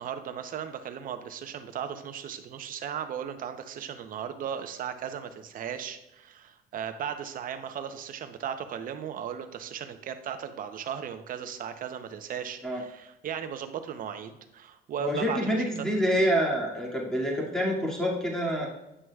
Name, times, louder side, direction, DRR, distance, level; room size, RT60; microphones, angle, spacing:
voice 1, 0.0-15.6, right 8 dB, 55° right, 9 dB, 0.8 m, -36 dB
voice 2, 15.0-18.7, equal, 5° left, -3 dB, 2.3 m, -27 dB
9.5 x 6.1 x 2.4 m, 0.94 s
cardioid pair, 110°, 17 cm